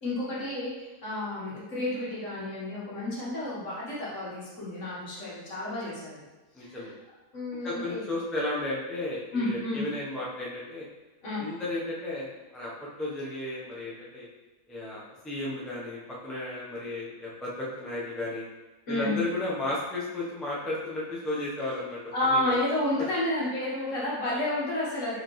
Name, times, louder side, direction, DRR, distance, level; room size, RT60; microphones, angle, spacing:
voice 1, 0.0-6.2 6.6-6.9 7.3-8.0 9.3-9.8 11.2-11.4 18.9-19.2 22.1-25.2, left 1 dB, 50° left, -7 dB, 1.6 m, -31 dB
voice 2, 6.5-6.9 7.6-10.9 11.4-12.7 13.0-14.3 14.7-18.4 18.9-22.5, left 2 dB, ahead, -6 dB, 0.4 m, -34 dB
4.7 x 3.6 x 3.1 m, 1.1 s
omnidirectional pair, 1.7 m